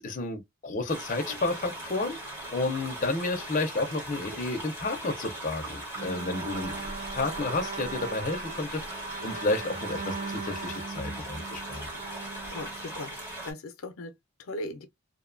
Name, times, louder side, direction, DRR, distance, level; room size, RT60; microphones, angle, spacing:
voice 1, 0.0-2.2 2.5-6.7 7.1-11.9, left 2 dB, 40° left, 0.5 m, -31 dB
sound 1, 0.9-13.5, right 1 dB, 10° right, 1.1 m, -39 dB
Bowed string instrument, 6.0-13.3, right 4 dB, 40° right, 0.6 m, -39 dB
voice 2, 12.5-13.2 13.4-14.9, left 1 dB, 90° left, 0.5 m, -38 dB
2.6 x 2.2 x 2.4 m
head